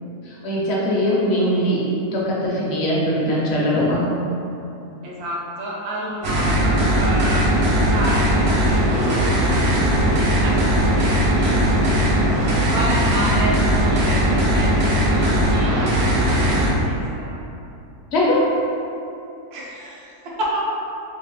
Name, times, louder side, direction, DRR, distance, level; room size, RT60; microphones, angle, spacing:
voice 1, 0.4-4.1 9.2-9.3 18.1-18.5, equal, 55° left, -5 dB, 0.8 m, -21 dB
voice 2, 5.0-8.8 9.1-9.9 10.4-11.7 12.7-15.7 16.5-17.3 19.5-20.6, right 1 dB, 80° right, -5 dB, 1.2 m, -30 dB
sound 1, 6.2-16.7, equal, 60° right, 0.7 m, -18 dB
3.3 x 2.9 x 3.3 m, 2.7 s
omnidirectional pair, 1.6 m